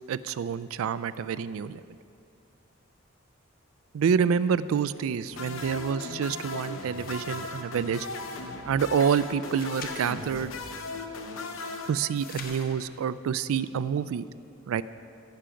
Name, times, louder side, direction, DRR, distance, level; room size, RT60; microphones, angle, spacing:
voice 1, 0.1-1.8 3.9-8.1 8.7-10.6 11.9-14.2 14.7-14.8, right 7 dB, 80° right, 16 dB, 0.3 m, -27 dB
sound 1, 5.3-12.6, left 3 dB, 70° left, 0.7 m, -37 dB
sound 2, 6.9-7.4 9.6-10.6 12.1-12.8, left 4 dB, 45° left, 0.9 m, -44 dB
15.0 x 5.8 x 5.1 m, 2.4 s
head